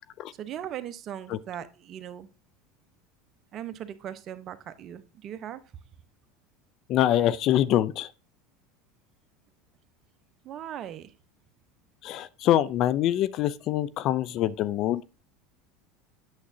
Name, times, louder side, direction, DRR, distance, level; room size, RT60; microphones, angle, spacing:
voice 1, 0.4-2.3 3.5-5.6 10.4-11.1, right 10 dB, 45° right, 0.9 m, -38 dB
voice 2, 6.9-8.1 12.0-15.0, left 12 dB, 55° left, 0.5 m, -24 dB
8.7 x 7.3 x 2.7 m
supercardioid pair, 95°, 0 cm